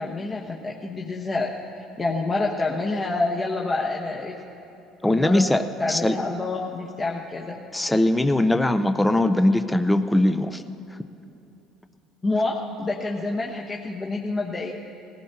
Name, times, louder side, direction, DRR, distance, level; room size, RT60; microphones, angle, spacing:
voice 1, 0.0-4.4 5.1-5.5 5.8-7.6 12.2-14.7, left 3 dB, 30° left, -2 dB, 1.1 m, -28 dB
voice 2, 5.0-6.2 7.7-10.6, left 1 dB, 10° left, 9 dB, 0.5 m, -21 dB
20.0 x 15.0 x 2.9 m, 2.8 s
hypercardioid pair, 75°, 0 cm